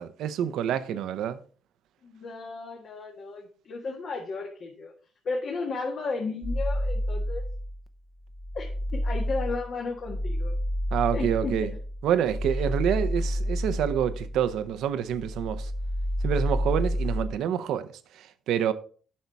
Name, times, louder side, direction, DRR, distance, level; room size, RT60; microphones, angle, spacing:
voice 1, 0.0-1.4 10.9-11.7 12.0-15.7 16.2-18.7, right 9 dB, 85° right, 0.7 m, -27 dB
voice 2, 2.0-4.9 5.2-7.5 8.5-10.6 11.1-11.6, left 4 dB, 55° left, 1.6 m, -34 dB
sound 1, 6.4-7.9 8.3-14.8 15.1-17.4, equal, 15° left, 0.7 m, -30 dB
8.6 x 5.6 x 4.7 m
cardioid pair, 90°, 0 cm